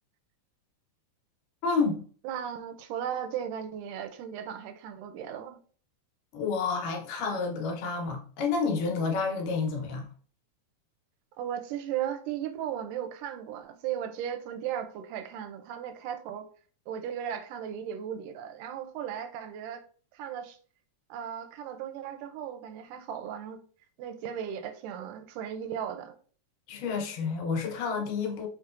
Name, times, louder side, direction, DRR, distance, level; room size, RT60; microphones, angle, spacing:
voice 1, 1.6-2.0 6.3-10.1 26.7-28.5, left 4 dB, 90° left, 2.6 m, -29 dB
voice 2, 2.2-5.6 11.4-16.5 16.9-19.8 20.1-20.6 21.1-23.6 24.0-26.2, right 9 dB, 85° right, 2.2 m, -36 dB
5.9 x 3.0 x 2.4 m
omnidirectional pair, 3.7 m